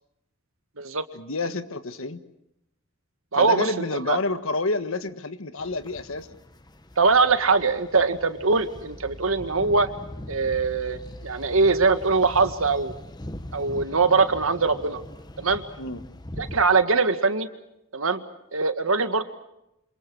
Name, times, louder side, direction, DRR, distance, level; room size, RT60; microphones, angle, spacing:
voice 1, 1.1-2.2 3.3-6.3 15.8-16.0, left 2 dB, 75° left, 11 dB, 1.5 m, -29 dB
voice 2, 3.3-4.2 7.0-9.9 10.3-12.9 13.5-15.0 15.4-15.6 16.4-17.5 17.9-18.2 18.5-19.2, right 4 dB, 80° right, 9 dB, 1.9 m, -22 dB
sound 1, 5.6-16.6, left 1 dB, 20° left, 1.1 m, -41 dB
28.0 x 26.5 x 6.2 m, 0.86 s
head